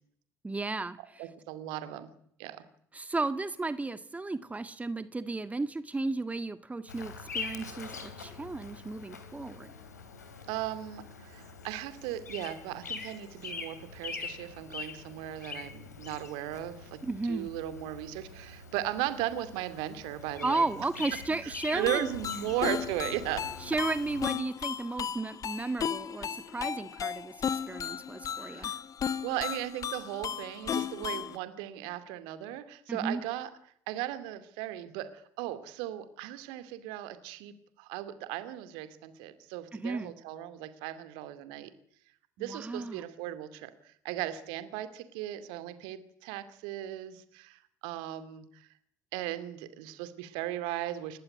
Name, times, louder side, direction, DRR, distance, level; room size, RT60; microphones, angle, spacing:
voice 1, 0.4-1.2 2.9-9.7 17.0-17.5 20.4-22.1 23.6-28.7 32.9-33.2 39.7-40.1 42.4-43.0, right 3 dB, 15° right, 13 dB, 1.7 m, -34 dB
voice 2, 1.2-2.1 2.4-2.6 10.5-17.0 17.3-20.6 21.4-23.5 28.4-28.8 29.2-33.5 33.9-41.7 42.4-48.7 49.1-51.2, right 13 dB, 65° right, 12 dB, 2.5 m, -37 dB
Bird vocalization bird call bird song, 6.9-24.3, left 5 dB, 80° left, 3.2 m, -44 dB
sound 1, 21.7-31.4, left 8 dB, 40° left, 1.2 m, -35 dB
29.0 x 15.5 x 9.7 m, 0.67 s
figure-of-eight pair, 55°, 9 cm